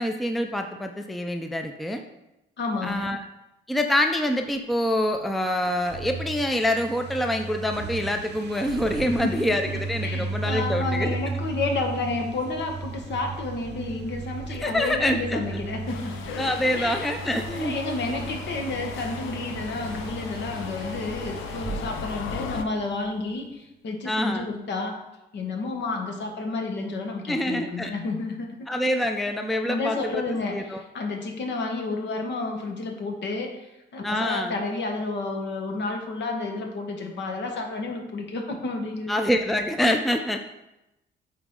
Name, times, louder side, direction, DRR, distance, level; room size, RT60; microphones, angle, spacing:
voice 1, 0.0-2.0 2.8-3.2 3.7-9.6 9.9-11.2 14.6-15.6 16.4-17.8 24.1-24.5 27.3-27.9 28.7-30.2 30.5-30.8 34.0-34.6 39.1-40.4, left 1 dB, ahead, 5 dB, 0.5 m, -26 dB
voice 2, 2.6-3.1 9.1-16.3 16.7-17.0 17.5-25.0 25.3-28.7 29.7-39.2, left 3 dB, 65° left, 3 dB, 1.3 m, -31 dB
sound 1, 5.6-23.1, right 3 dB, 60° right, 0.7 m, -35 dB
Subway metro underground, 15.9-22.6, left 6 dB, 85° left, 0.6 m, -37 dB
8.3 x 4.1 x 3.7 m, 0.93 s
cardioid pair, 90°, 20 cm